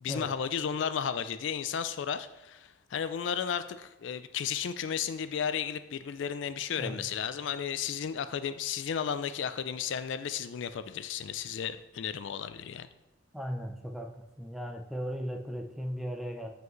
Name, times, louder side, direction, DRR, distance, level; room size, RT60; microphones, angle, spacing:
voice 1, 0.0-12.9, left 7 dB, 70° left, 12 dB, 0.4 m, -34 dB
voice 2, 13.3-14.1 14.4-16.5, equal, ahead, 3 dB, 0.5 m, -37 dB
8.0 x 5.0 x 3.1 m, 0.96 s
head